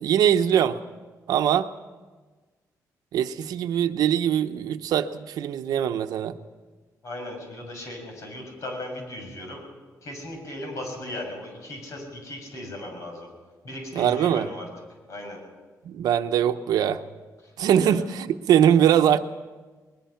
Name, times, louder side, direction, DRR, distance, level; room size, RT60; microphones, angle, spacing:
voice 1, 0.0-0.8 1.3-1.7 3.1-6.4 13.9-14.5 15.8-17.0 17.6-19.2, right 9 dB, 85° right, 9 dB, 0.9 m, -22 dB
voice 2, 7.0-9.6 10.0-13.3 13.6-14.7 15.1-15.4 17.8-17.9, left 1 dB, 55° left, 2 dB, 6.9 m, -37 dB
22.0 x 20.5 x 5.8 m, 1.3 s
cardioid pair, 135°, 6 cm